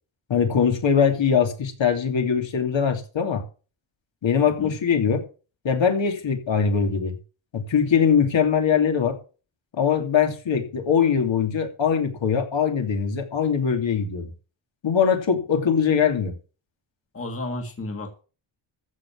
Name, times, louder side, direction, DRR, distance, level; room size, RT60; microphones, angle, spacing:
voice 1, 0.3-3.4 4.2-5.2 5.6-7.2 7.5-9.2 9.8-14.3 14.8-16.3, left 7 dB, 70° left, 2.9 m, -22 dB
voice 2, 17.1-18.2, left 2 dB, 30° left, 2.0 m, -32 dB
14.5 x 6.1 x 7.3 m
wide cardioid pair, 160°, 47 cm